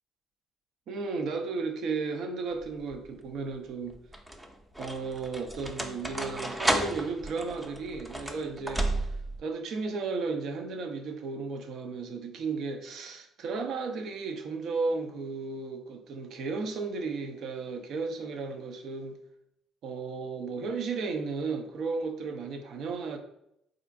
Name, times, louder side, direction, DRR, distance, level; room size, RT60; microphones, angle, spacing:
voice 1, 0.9-3.9 4.8-8.9 9.4-19.2 19.8-23.2, right 4 dB, 65° right, 5 dB, 0.5 m, -34 dB
sound 1, 2.6-3.0 3.9-9.4, right 1 dB, 15° right, 0.6 m, -33 dB
4.2 x 2.5 x 2.6 m, 0.77 s
hypercardioid pair, 55°, 0 cm